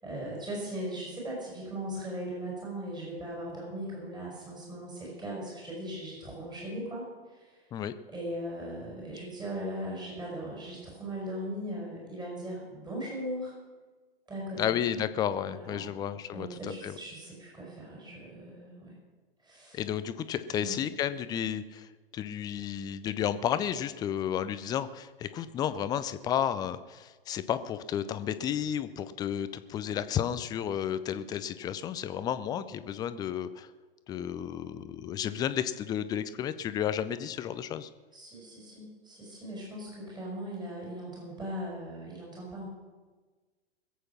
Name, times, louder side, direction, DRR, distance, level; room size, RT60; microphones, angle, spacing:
voice 1, 0.0-7.1 7.3-7.6 8.1-13.5 14.3-14.7 15.4-15.9 16.3-18.9 19.4-19.8 20.6-20.9 38.1-42.7, equal, 15° right, -4 dB, 5.5 m, -39 dB
voice 2, 14.6-17.0 19.7-33.7 34.1-37.9, left 9 dB, 15° left, 13 dB, 0.5 m, -32 dB
21.0 x 8.3 x 5.9 m, 1.3 s
figure-of-eight pair, 105°, 31 cm